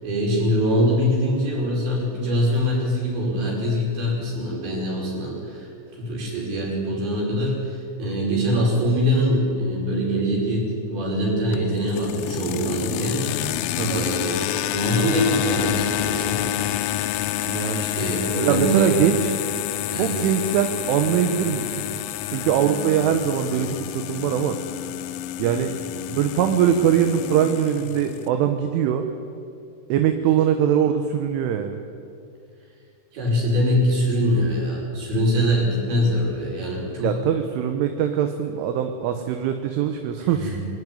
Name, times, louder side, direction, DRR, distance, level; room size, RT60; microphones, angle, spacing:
voice 1, 0.0-5.7 6.0-13.2 13.8-14.5 14.7-16.5 17.8-19.0 19.9-20.3 33.1-37.1 40.2-40.6, equal, 50° right, -3 dB, 6.8 m, -23 dB
sound 1, 11.5-28.3, left 13 dB, 85° left, 3.4 m, -28 dB
voice 2, 13.8-14.1 17.4-17.9 18.4-19.3 20.0-22.0 22.3-24.6 25.4-25.7 26.1-29.0 29.9-31.8 37.0-40.6, right 9 dB, 80° right, 6 dB, 3.4 m, -22 dB
23.5 x 13.0 x 9.9 m, 2.4 s
omnidirectional pair, 5.8 m